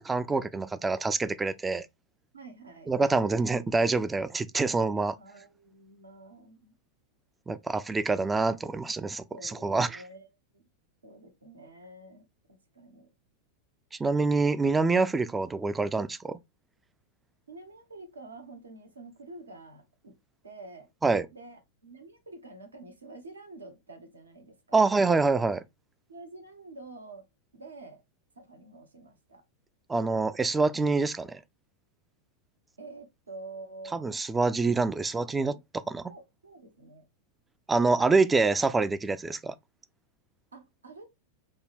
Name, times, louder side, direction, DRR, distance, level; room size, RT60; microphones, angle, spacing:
voice 1, 0.0-1.9 2.9-5.2 7.5-10.0 14.0-16.4 21.0-21.3 24.7-25.6 29.9-31.4 33.9-35.5 35.9-36.1 37.7-39.5, right 3 dB, 10° right, 0.3 m, -26 dB
voice 2, 2.3-2.9 5.2-6.7 9.3-10.3 10.5-10.6 11.0-13.1 17.5-20.1 20.4-20.9 21.3-24.8 26.1-27.2 27.5-28.0 28.4-29.4 32.8-34.0 35.3-35.6 36.1-37.1 40.5-41.0, right 2 dB, 75° right, 0.9 m, -48 dB
5.3 x 2.2 x 3.2 m
figure-of-eight pair, 90°, 0 cm